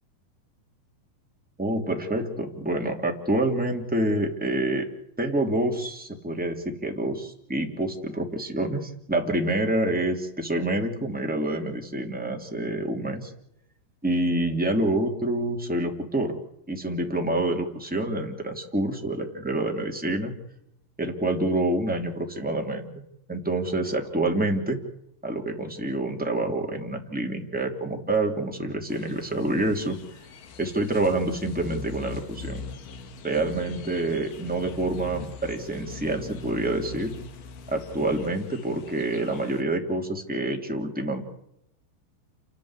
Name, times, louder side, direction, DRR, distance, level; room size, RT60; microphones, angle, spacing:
voice 1, 1.6-4.9 5.2-13.3 14.0-16.3 16.7-20.3 21.0-22.9 23.3-24.8 25.2-30.0 30.6-32.6 33.2-37.1 37.7-41.2, right 1 dB, 5° right, 1 dB, 2.1 m, -27 dB
sound 1, 28.9-39.6, left 3 dB, 60° left, 3.0 m, -41 dB
29.0 x 13.5 x 9.9 m, 0.78 s
omnidirectional pair, 5.0 m